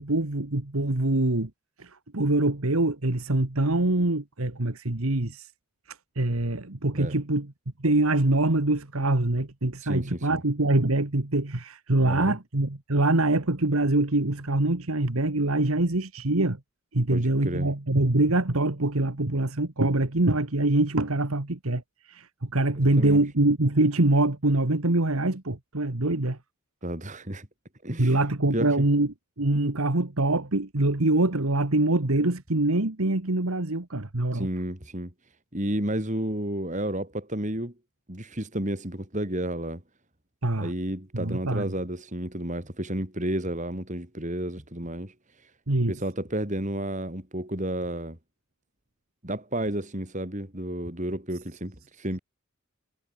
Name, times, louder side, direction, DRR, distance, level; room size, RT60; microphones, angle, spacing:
voice 1, 0.0-1.5 1.8-5.5 5.9-7.5 7.8-16.6 16.9-26.4 28.0-34.5 40.4-40.7 41.1-41.7 45.7-45.9, right 2 dB, 80° right, 1.8 m, -24 dB
voice 2, 9.8-10.4 12.0-12.4 17.1-17.7 22.8-23.2 26.8-27.5 27.8-28.2 28.5-28.7 34.3-35.1 35.5-37.7 38.1-39.8 40.6-45.1 45.4-45.5 45.9-48.2 49.2-52.2, right 1 dB, 35° right, 3.9 m, -31 dB
head